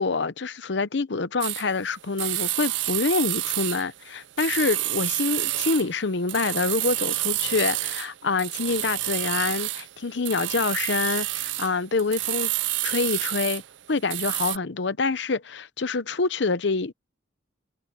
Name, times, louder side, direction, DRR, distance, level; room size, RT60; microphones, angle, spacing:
voice 1, 0.0-12.5 12.8-13.6 13.9-16.9, left 4 dB, 65° left, 0.8 m, -26 dB
sound 1, 1.4-1.7 2.2-4.1 4.4-5.9 6.3-8.1 8.4-9.9 10.2-13.7 14.0-14.6, right 17 dB, 70° right, 0.5 m, -28 dB
head